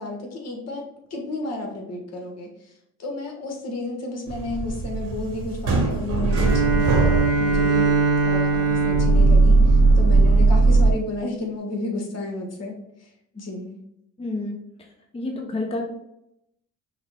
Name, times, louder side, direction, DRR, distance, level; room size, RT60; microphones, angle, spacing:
voice 1, 0.0-2.7 3.0-8.0 8.2-12.7 13.0-13.8, left 2 dB, 55° left, 0 dB, 1.4 m, -32 dB
sound 1, 4.3-10.9, right 3 dB, 90° right, 1.5 m, -19 dB
Bowed string instrument, 6.3-10.7, right 3 dB, 55° right, 0.9 m, -23 dB
voice 2, 14.2-14.6 15.1-15.8, left 2 dB, 20° left, 1 dB, 0.7 m, -28 dB
5.6 x 2.3 x 3.4 m, 0.80 s
cardioid pair, 90°, 30 cm